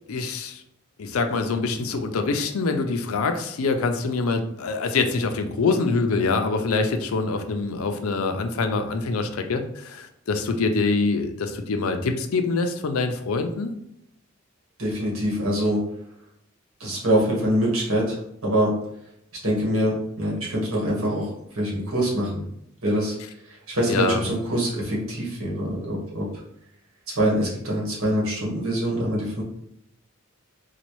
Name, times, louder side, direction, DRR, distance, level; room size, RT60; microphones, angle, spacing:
voice 1, 0.1-0.6 1.0-13.7 23.9-24.3, left 3 dB, 85° left, 6 dB, 0.5 m, -25 dB
voice 2, 14.8-15.8 16.8-18.7 19.4-22.4 22.8-23.2 23.4-26.3 27.1-29.4, equal, 80° right, -3 dB, 1.4 m, -24 dB
4.1 x 2.3 x 3.0 m, 0.75 s
head